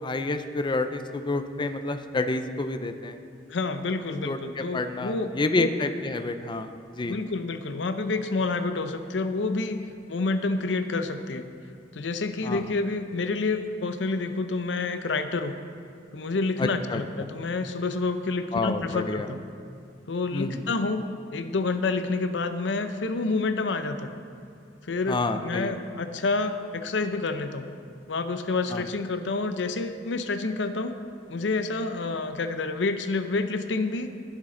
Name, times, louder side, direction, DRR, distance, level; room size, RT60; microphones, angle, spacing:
voice 1, 0.0-3.2 4.2-6.7 6.9-7.1 12.4-12.6 16.6-17.3 18.5-19.3 20.3-20.7 25.1-25.7 28.7-28.8, left 2 dB, 25° left, 8 dB, 0.4 m, -29 dB
voice 2, 3.5-5.7 7.0-9.8 10.1-11.5 11.9-15.6 16.1-19.4 20.1-21.0 21.3-24.1 24.8-27.7 28.1-30.9 31.3-34.1, left 3 dB, 80° left, 9 dB, 0.6 m, -28 dB
19.0 x 7.5 x 3.8 m, 2.4 s
head